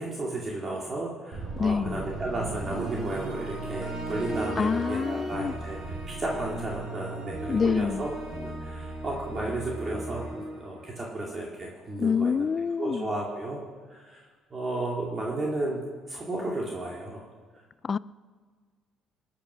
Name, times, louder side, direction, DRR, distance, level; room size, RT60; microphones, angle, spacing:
voice 1, 0.0-13.6 13.9-14.2 14.5-15.8 16.1-17.2, right 2 dB, 30° right, 2.4 m, -33 dB
sound 1, 1.3-11.5, right 2 dB, 55° right, 4.8 m, -36 dB
voice 2, 1.6-2.0 4.6-5.5 7.5-8.1 12.0-13.1 17.8-18.0, left 6 dB, 35° left, 0.3 m, -26 dB
21.5 x 8.8 x 6.3 m
cardioid pair, 115°, 0 cm